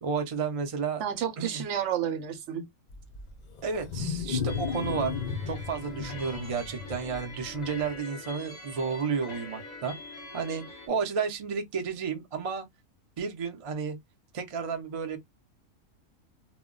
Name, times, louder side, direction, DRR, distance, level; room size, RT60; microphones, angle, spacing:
voice 1, 0.0-1.0 1.4-1.6 3.6-10.0 10.3-12.7 13.2-14.0 14.3-15.2, right 5 dB, 50° right, 0.4 m, -32 dB
voice 2, 1.0-2.7, right 9 dB, 70° right, 0.8 m, -31 dB
Wild animals, 2.9-7.9, left 6 dB, 75° left, 0.4 m, -34 dB
sound 1, 4.5-10.9, left 2 dB, 40° left, 0.7 m, -44 dB
2.2 x 2.1 x 3.7 m
omnidirectional pair, 1.4 m